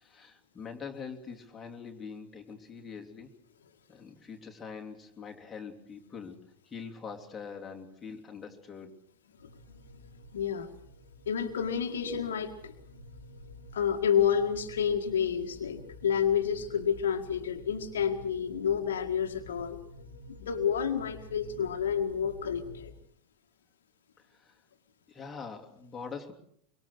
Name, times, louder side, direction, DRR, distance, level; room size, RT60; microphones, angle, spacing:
voice 1, 0.0-3.3 3.9-9.0 24.3-24.6 25.1-26.3, left 5 dB, 15° left, 1 dB, 3.0 m, -44 dB
sound 1, 9.4-22.9, left 1 dB, 85° right, 5.9 m, -50 dB
voice 2, 10.3-10.7 11.3-12.7 13.7-19.8 20.3-22.9, left 8 dB, 65° left, 5 dB, 1.9 m, -29 dB
24.5 x 24.0 x 6.4 m, 0.68 s
figure-of-eight pair, 90°, 0 cm